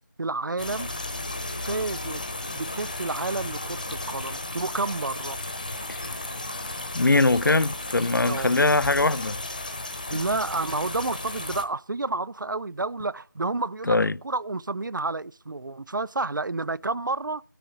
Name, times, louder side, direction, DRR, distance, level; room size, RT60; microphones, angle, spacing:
voice 1, 0.2-0.9 1.6-2.2 2.5-5.4 8.2-8.6 10.1-17.4, right 3 dB, 70° right, 0.5 m, -30 dB
sound 1, 0.6-11.6, left 2 dB, 25° left, 1.0 m, -34 dB
voice 2, 6.9-9.4 13.9-14.2, left 3 dB, 70° left, 0.5 m, -21 dB
16.5 x 10.0 x 3.8 m
figure-of-eight pair, 175°, 11 cm